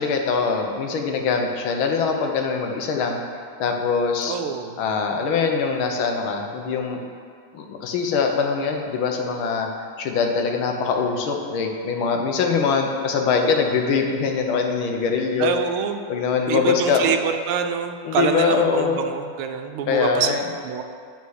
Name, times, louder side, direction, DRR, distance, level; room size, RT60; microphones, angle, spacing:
voice 1, 0.0-3.2 3.6-4.4 4.8-7.0 7.5-9.7 10.0-15.5 16.1-17.2 18.0-19.0 19.9-20.5, left 5 dB, 70° left, 3 dB, 1.6 m, -23 dB
voice 2, 4.3-4.8 15.4-16.1 16.5-20.8, right 7 dB, 80° right, 7 dB, 1.4 m, -26 dB
10.0 x 4.2 x 6.3 m, 2.2 s
omnidirectional pair, 2.4 m